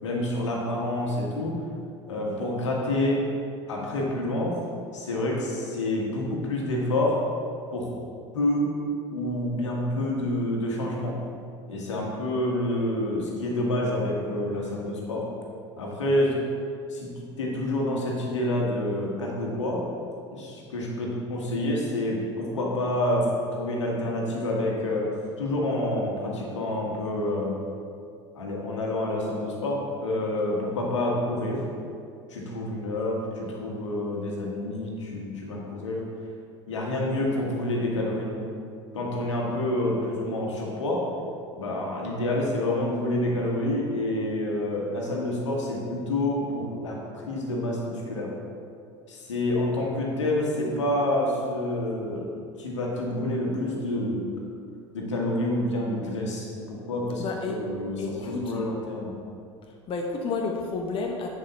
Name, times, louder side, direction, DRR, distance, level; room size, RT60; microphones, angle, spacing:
voice 1, 0.0-1.6 2.1-3.2 3.7-4.6 4.9-7.2 7.7-7.9 8.3-8.7 9.1-11.2 11.7-15.3 15.8-16.4 16.9-19.8 20.3-27.6 28.3-31.6 32.3-36.0 36.7-38.4 38.9-41.0 41.5-48.3 49.1-52.3 52.6-54.3 54.9-59.1, left 1 dB, 80° left, -2 dB, 1.6 m, -28 dB
voice 2, 57.2-57.6 58.0-58.6 59.9-61.3, left 4 dB, 35° left, 1 dB, 0.9 m, -30 dB
10.5 x 5.3 x 4.1 m, 2.4 s
hypercardioid pair, 75°, 15 cm